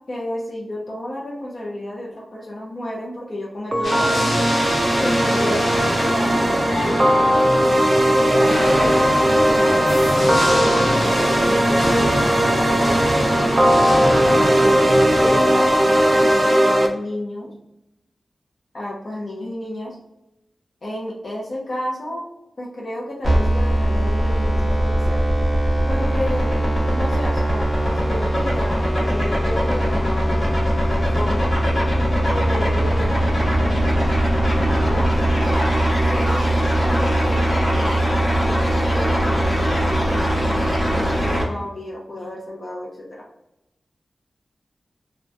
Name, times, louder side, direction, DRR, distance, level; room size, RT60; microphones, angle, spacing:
voice 1, 0.1-4.3 4.9-7.2 8.2-13.0 13.3-13.5 14.4-17.5 18.7-20.0 20.8-22.2 22.6-25.2 25.9-26.5 26.9-30.4 30.9-31.5 32.3-34.0 34.4-35.3 36.0-36.5 36.7-43.3, left 1 dB, 50° left, -4 dB, 0.6 m, -32 dB
sound 1, 3.7-16.9, right 1 dB, 30° right, 0.3 m, -18 dB
sound 2, 3.8-16.5, left 1 dB, 70° left, 1.2 m, -26 dB
sound 3, 23.2-41.4, right 1 dB, 30° left, 0.9 m, -20 dB
2.9 x 2.2 x 2.4 m, 0.87 s
wide cardioid pair, 130°, 0 cm